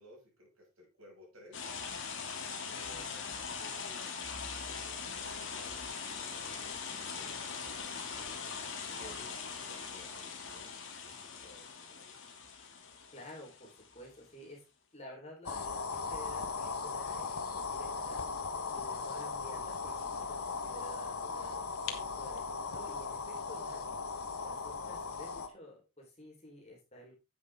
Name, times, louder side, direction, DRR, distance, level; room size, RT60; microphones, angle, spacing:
voice 1, 0.0-1.7 2.6-4.1 4.4-7.9 8.9-12.2, equal, 70° right, -2 dB, 6.6 m, -58 dB
sound 1, 1.5-14.1, left 5 dB, 60° left, 2.6 m, -41 dB
voice 2, 2.6-3.0 13.1-14.6 14.9-18.2 18.7-23.8 24.4-27.2, left 1 dB, 30° left, -1 dB, 4.3 m, -51 dB
sound 2, 15.5-25.5, left 4 dB, 90° left, 1.4 m, -38 dB
9.7 x 8.1 x 3.7 m, 0.27 s
head